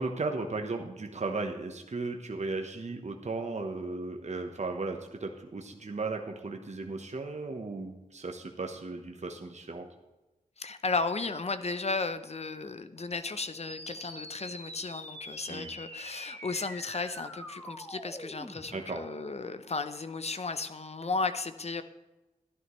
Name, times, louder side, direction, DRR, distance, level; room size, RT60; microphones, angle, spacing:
voice 1, 0.0-9.8 15.5-15.7 18.7-19.0, right 3 dB, 50° right, 3 dB, 1.0 m, -36 dB
voice 2, 10.6-21.8, left 3 dB, 45° left, 11 dB, 0.7 m, -34 dB
sound 1, 13.6-18.6, equal, 10° left, 1.3 m, -44 dB
12.5 x 11.0 x 3.1 m, 1.1 s
wide cardioid pair, 70°, 15 cm